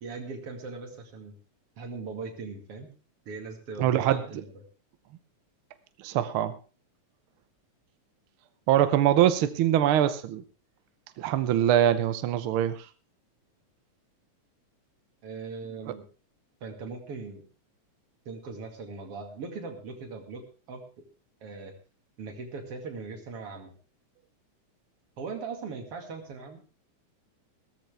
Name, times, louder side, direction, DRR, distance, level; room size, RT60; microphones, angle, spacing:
voice 1, 0.0-1.4 1.8-2.9 3.3-4.5 15.2-16.1 16.6-17.4 18.3-21.1 21.4-21.7 22.2-23.7 25.2-26.6, right 4 dB, 50° right, 3 dB, 3.1 m, -39 dB
voice 2, 3.8-4.2 6.0-6.6 8.7-10.4 11.2-12.9, right 11 dB, 80° right, 11 dB, 1.2 m, -23 dB
16.5 x 14.0 x 3.4 m, 0.34 s
omnidirectional pair, 3.4 m